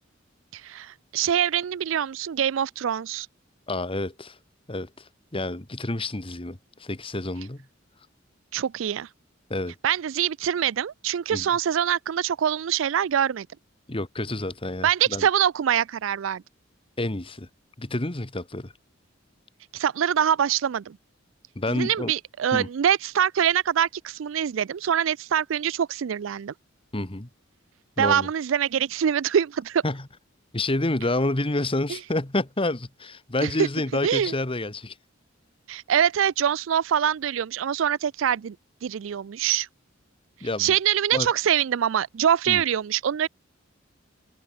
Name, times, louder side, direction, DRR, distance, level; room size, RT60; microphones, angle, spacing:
voice 1, 0.5-3.3 8.5-9.1 9.8-13.5 14.8-16.4 19.7-21.0 21.7-26.5 28.0-29.8 31.9-32.0 33.4-33.7 34.0-34.3 35.7-38.6 38.8-39.7 40.6-43.3, right 9 dB, 70° right, 0.4 m, -24 dB
voice 2, 3.7-4.3 4.7-5.0 5.3-7.7 9.5-9.7 11.3-11.5 13.9-15.3 17.0-17.5 17.8-18.7 21.5-22.1 22.5-22.7 26.9-27.3 28.0-28.3 29.8-30.0 30.5-34.9 40.4-40.7 41.1-41.3 42.5-42.6, left 2 dB, 25° left, 1.5 m, -28 dB
head